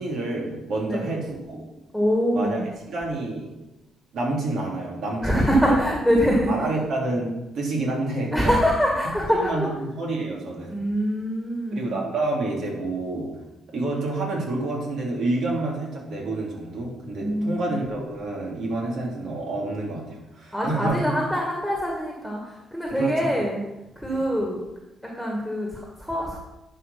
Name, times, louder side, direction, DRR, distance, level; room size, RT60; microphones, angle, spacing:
voice 1, 0.0-1.6 2.3-3.5 4.1-5.8 6.5-7.3 7.5-8.6 9.3-10.8 11.7-13.3 13.7-21.1 22.9-23.3 24.1-24.2, right 2 dB, 70° right, -2 dB, 3.3 m, -28 dB
voice 2, 1.9-2.6 5.2-6.7 8.3-9.7 10.7-12.0 17.2-17.8 20.5-23.6 24.0-24.7 25.0-26.4, equal, ahead, -1 dB, 2.0 m, -24 dB
11.0 x 4.9 x 5.9 m, 0.97 s
cardioid pair, 90°, 0 cm